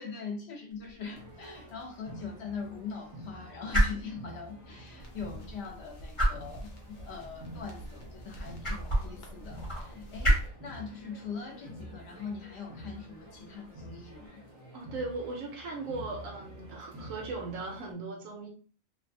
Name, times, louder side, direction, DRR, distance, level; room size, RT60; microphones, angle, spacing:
voice 1, 0.0-14.4, left 5 dB, 55° left, 0 dB, 0.9 m, -42 dB
sound 1, 0.7-14.3, right 1 dB, 25° left, 0.9 m, -34 dB
sound 2, 1.1-17.9, right 1 dB, 30° right, 0.5 m, -48 dB
sound 3, 5.0-10.5, equal, 70° left, 0.4 m, -47 dB
voice 2, 14.7-18.5, right 3 dB, 75° right, 0 dB, 1.0 m, -38 dB
2.5 x 2.2 x 2.6 m, 0.39 s
omnidirectional pair, 1.5 m